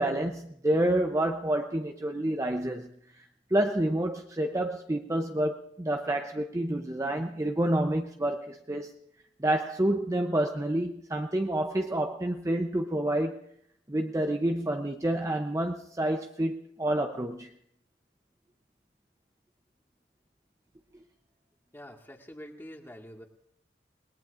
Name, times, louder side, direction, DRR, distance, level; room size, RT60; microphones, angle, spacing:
voice 1, 0.0-8.9 9.4-13.4 13.9-17.5, right 1 dB, 20° right, 0.7 m, -28 dB
voice 2, 21.7-23.3, equal, 15° left, 1.8 m, -46 dB
29.0 x 19.5 x 2.5 m
head